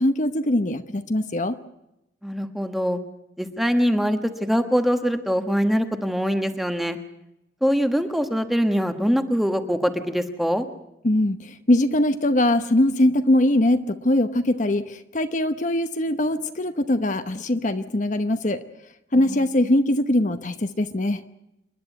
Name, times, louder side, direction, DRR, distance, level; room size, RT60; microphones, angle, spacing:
voice 1, 0.0-1.6 11.0-18.6 19.1-21.2, left 1 dB, 45° left, 9 dB, 1.0 m, -22 dB
voice 2, 2.2-3.0 3.4-7.0 7.6-10.7 19.1-19.4, equal, ahead, 7 dB, 1.3 m, -23 dB
28.5 x 11.0 x 9.2 m, 0.87 s
head